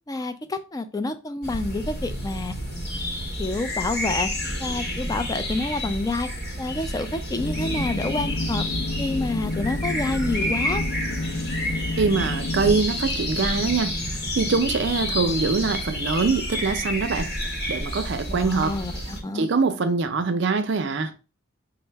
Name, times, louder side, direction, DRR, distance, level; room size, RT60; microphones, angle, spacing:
voice 1, 0.1-2.5 3.4-4.3 4.6-6.3 6.6-8.7 9.0-10.8 18.3-19.5, left 2 dB, 20° left, 0.3 m, -28 dB
sound 1, 1.4-19.2, left 1 dB, 55° left, 0.9 m, -30 dB
sound 2, 7.4-12.8, left 2 dB, 80° left, 0.6 m, -29 dB
voice 2, 12.0-14.0 14.4-17.3 17.7-18.8 19.3-21.1, right 4 dB, 60° right, 0.5 m, -23 dB
5.3 x 2.0 x 3.2 m
head